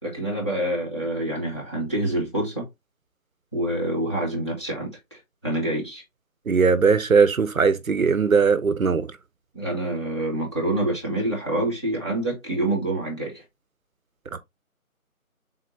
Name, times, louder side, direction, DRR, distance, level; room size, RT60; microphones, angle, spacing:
voice 1, 0.0-2.7 3.5-6.0 9.5-13.4, right 1 dB, 20° left, 1.0 m, -27 dB
voice 2, 6.5-9.1, right 5 dB, 70° right, 0.6 m, -19 dB
3.6 x 3.4 x 2.6 m
figure-of-eight pair, 160°, 44 cm